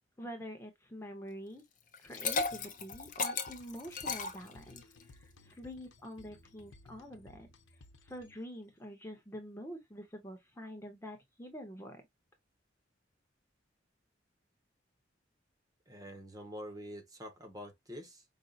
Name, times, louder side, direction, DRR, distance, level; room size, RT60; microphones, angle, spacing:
voice 1, 0.2-1.6 2.0-7.5 8.0-12.0, equal, 15° left, 0.8 m, -46 dB
Liquid, 1.9-5.0, left 4 dB, 45° left, 0.8 m, -35 dB
sound 1, 2.1-8.7, left 2 dB, 90° left, 0.8 m, -59 dB
voice 2, 15.9-18.2, equal, 20° right, 1.0 m, -46 dB
5.2 x 2.7 x 2.3 m
head